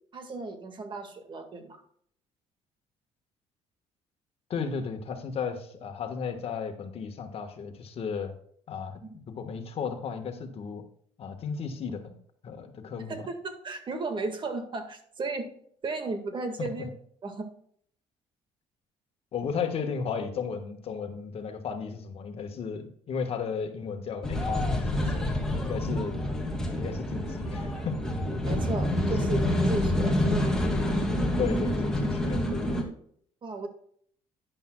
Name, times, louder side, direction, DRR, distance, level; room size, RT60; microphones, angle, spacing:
voice 1, 0.1-1.8 9.0-9.2 13.1-15.5 15.8-16.9 17.2-17.5 28.3-30.5 33.4-33.7, right 3 dB, 40° right, 6 dB, 1.8 m, -35 dB
voice 2, 4.5-8.3 8.7-9.0 9.3-10.8 11.2-12.2 12.4-13.3 16.6-16.7 19.3-26.2 26.7-28.0 29.2-29.3 31.4-32.7, left 6 dB, 50° left, 6 dB, 1.5 m, -34 dB
sound 1, 24.2-32.8, left 1 dB, 5° left, 2.2 m, -27 dB
10.5 x 10.0 x 2.3 m, 0.63 s
cardioid pair, 100°, 12 cm